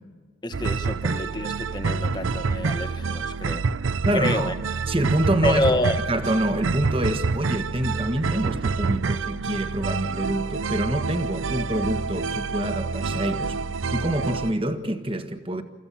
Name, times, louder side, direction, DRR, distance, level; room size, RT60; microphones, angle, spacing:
voice 1, 0.4-3.6 4.1-4.5 5.4-6.0, left 1 dB, 20° left, 1.2 m, -27 dB
sound 1, 0.5-14.5, right 4 dB, 85° right, 0.6 m, -27 dB
voice 2, 4.0-4.5 4.9-5.7 6.1-13.5 13.9-15.6, right 1 dB, 25° right, 1.5 m, -26 dB
29.5 x 15.0 x 7.1 m
head